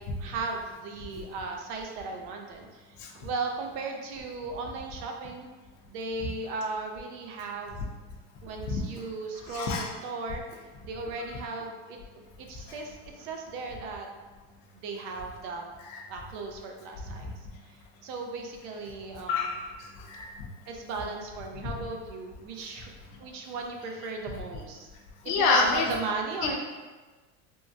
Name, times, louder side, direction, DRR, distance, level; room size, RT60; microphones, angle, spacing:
voice 1, 0.0-5.5 5.9-7.9 8.4-14.1 14.7-15.6 16.1-19.6 20.7-22.9 23.2-24.9 25.2-26.6, right 3 dB, 55° right, 2 dB, 0.4 m, -37 dB
voice 2, 9.5-9.9 15.9-16.0 19.3-20.5 25.3-25.9 26.4-26.6, left 4 dB, 50° left, 0 dB, 0.6 m, -27 dB
3.5 x 2.0 x 2.6 m, 1.3 s
cardioid pair, 160°, 35 cm